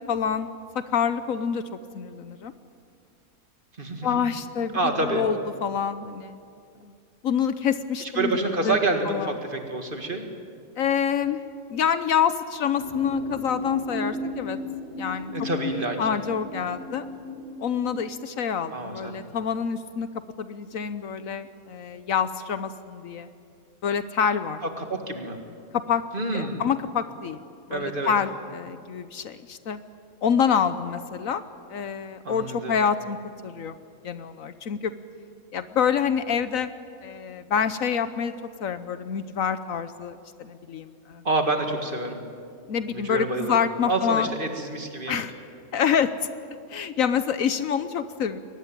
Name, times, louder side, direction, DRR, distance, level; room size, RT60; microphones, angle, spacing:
voice 1, 0.1-0.5 0.7-1.6 1.9-2.5 4.0-6.4 6.8-6.9 7.2-8.4 8.6-8.8 9.1-9.3 10.8-11.4 11.7-14.6 15.0-15.3 16.0-17.1 17.6-20.1 20.4-23.3 23.8-24.6 25.7-26.0 26.3-27.4 27.7-29.8 30.2-31.4 31.7-33.8 34.0-34.9 35.5-36.7 37.0-38.3 38.6-41.2 42.7-44.3 45.1-45.3 45.7-46.1 46.7-48.4, left 7 dB, 65° left, 12 dB, 1.2 m, -27 dB
voice 2, 3.8-4.2 4.7-5.2 8.0-10.3 15.3-16.0 18.7-19.2 24.8-25.4 26.1-26.6 27.7-28.1 32.2-32.8 41.2-42.2 42.9-43.6 43.9-45.2, right 2 dB, 35° right, 4 dB, 2.2 m, -27 dB
sound 1, 12.8-18.1, left 2 dB, 40° left, 5.1 m, -34 dB
22.5 x 19.0 x 9.1 m, 2.3 s
omnidirectional pair, 1.6 m